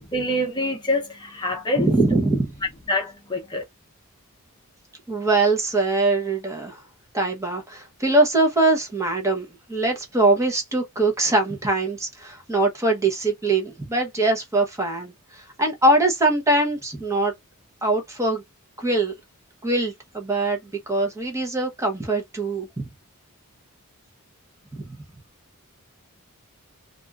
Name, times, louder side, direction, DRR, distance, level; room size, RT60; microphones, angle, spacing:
voice 1, 0.1-1.9 2.9-3.6, left 1 dB, 20° left, 0.7 m, -25 dB
voice 2, 1.8-2.5 5.1-6.8 7.1-17.3 17.8-18.4 18.8-19.1 19.6-22.9 24.7-24.8, right 2 dB, 15° right, 0.9 m, -22 dB
3.5 x 2.5 x 2.3 m
head